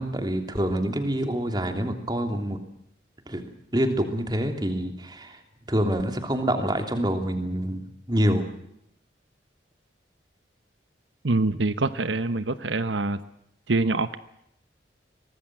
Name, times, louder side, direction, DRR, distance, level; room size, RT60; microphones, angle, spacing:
voice 1, 0.0-2.6 3.3-5.4 5.7-8.4, equal, 20° right, 6 dB, 3.1 m, -26 dB
voice 2, 11.2-13.2 13.7-14.2, right 3 dB, 80° right, 12 dB, 1.0 m, -25 dB
24.0 x 19.5 x 7.6 m, 0.77 s
head